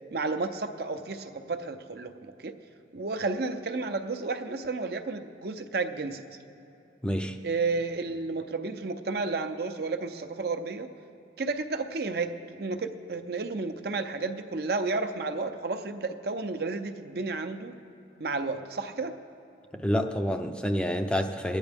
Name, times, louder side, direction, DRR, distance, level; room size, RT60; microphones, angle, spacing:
voice 1, 0.1-2.5 2.9-6.2 7.4-10.9 11.4-17.7 18.2-19.1, right 3 dB, 55° right, 7 dB, 0.6 m, -32 dB
voice 2, 7.0-7.4 19.8-21.6, equal, 5° left, 5 dB, 0.5 m, -28 dB
21.0 x 9.1 x 3.5 m, 2.9 s
head